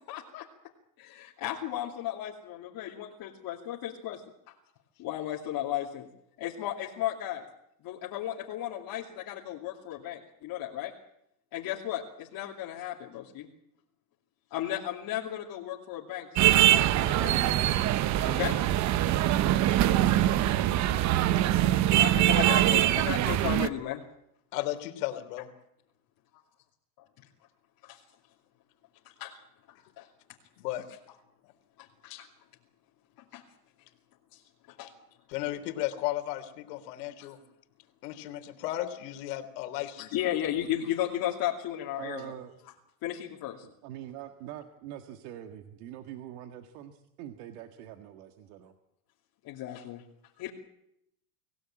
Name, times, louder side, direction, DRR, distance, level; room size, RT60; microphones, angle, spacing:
voice 1, 0.1-0.5 1.0-4.2 4.5-4.6 5.0-6.1 6.4-7.4 7.8-10.9 11.5-13.5 14.5-17.3 18.2-18.6 22.0-24.0 27.8-28.0 29.2-29.3 30.0-30.1 31.8-32.3 33.3-33.4 34.3-34.4 34.7-34.9 37.2-37.3 40.0-42.4 43.0-43.7 49.4-50.0 50.4-50.5, left 12 dB, 45° left, -3 dB, 2.8 m, -35 dB
sound 1, 16.4-23.7, right 13 dB, 35° right, 0.9 m, -23 dB
voice 2, 24.5-25.5 30.6-31.0 35.3-37.4 38.0-40.1, left 14 dB, 75° left, 8 dB, 3.5 m, -34 dB
voice 3, 42.0-42.5 43.8-48.7, right 12 dB, 70° right, 6 dB, 1.9 m, -43 dB
25.5 x 16.5 x 8.9 m, 0.80 s
supercardioid pair, 135°, 47 cm